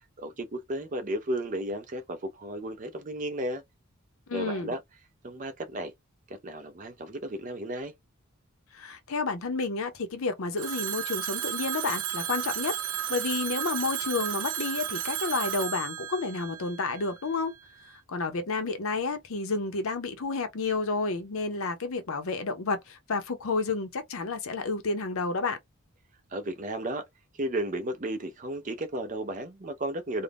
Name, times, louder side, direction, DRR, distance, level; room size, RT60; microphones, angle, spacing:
voice 1, 0.2-3.6 4.3-4.8 5.2-5.9 6.3-7.9 26.3-27.0 27.3-30.2, right 1 dB, 35° right, 0.5 m, -34 dB
voice 2, 4.3-4.7 8.7-12.7 13.1-17.6 18.1-25.6, left 3 dB, 70° left, 0.6 m, -30 dB
Telephone, 10.6-17.4, right 10 dB, 85° right, 0.6 m, -33 dB
2.5 x 2.1 x 3.3 m
head